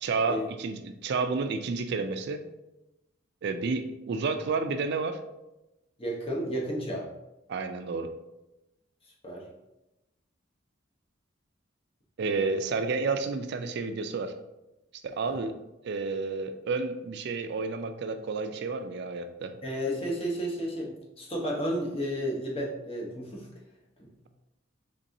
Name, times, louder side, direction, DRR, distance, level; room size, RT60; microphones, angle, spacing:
voice 1, 0.0-2.4 3.4-5.2 7.5-8.1 12.2-14.3 15.0-15.6 15.8-19.6, right 4 dB, 55° right, 7 dB, 0.4 m, -30 dB
voice 2, 6.0-7.0 9.2-9.4 15.3-15.4 19.6-23.5 24.0-24.1, equal, 30° left, -2 dB, 0.8 m, -32 dB
4.1 x 3.6 x 2.6 m, 0.94 s
head